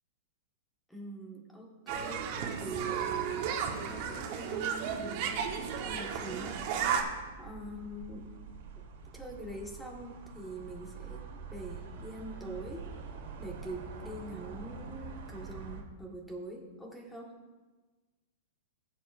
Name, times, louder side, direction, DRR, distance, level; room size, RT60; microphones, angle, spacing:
voice 1, 0.9-8.3 9.1-12.9 13.4-17.4, right 2 dB, 5° left, 0 dB, 1.5 m, -44 dB
sound 1, 1.9-7.0, right 7 dB, 45° right, 1.2 m, -34 dB
sound 2, 5.3-15.8, right 5 dB, 65° right, 1.6 m, -46 dB
15.5 x 7.6 x 2.6 m, 1.3 s
hypercardioid pair, 150°, 0 cm